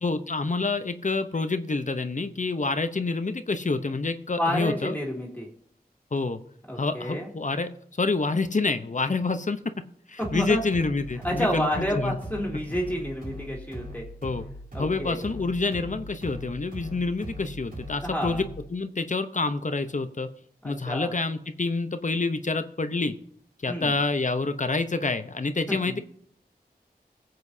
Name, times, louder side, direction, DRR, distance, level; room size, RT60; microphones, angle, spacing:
voice 1, 0.0-4.9 6.1-6.4 6.8-7.7 8.0-9.6 10.1-12.2 14.2-14.4 14.8-18.5 18.7-20.3 20.6-23.1 23.6-26.0, left 3 dB, 50° left, 10 dB, 0.8 m, -27 dB
voice 2, 4.4-5.5 6.7-7.3 10.2-10.6 11.2-14.0 14.7-15.2 18.0-18.4 20.6-21.1 23.7-23.9 25.7-26.0, equal, 10° left, -3 dB, 2.6 m, -30 dB
sound 1, 10.2-18.7, equal, 60° right, 4.7 m, -40 dB
19.5 x 7.7 x 2.8 m, 0.65 s
wide cardioid pair, 45°, 16 cm